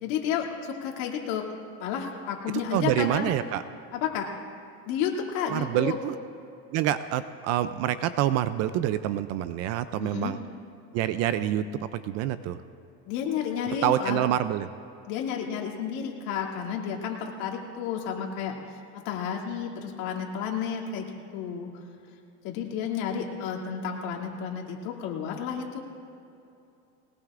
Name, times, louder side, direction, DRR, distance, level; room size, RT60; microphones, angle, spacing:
voice 1, 0.0-1.5 1.8-3.3 3.9-4.3 4.9-6.0 10.0-10.3 13.0-14.3 15.1-21.7 22.4-25.8, left 7 dB, 65° left, -1 dB, 2.7 m, -31 dB
voice 2, 2.7-3.6 5.5-6.1 6.7-10.4 10.9-11.7 11.9-12.6 13.8-14.7, right 12 dB, 40° right, 12 dB, 0.4 m, -26 dB
21.0 x 19.5 x 2.5 m, 2.7 s
supercardioid pair, 135°, 42 cm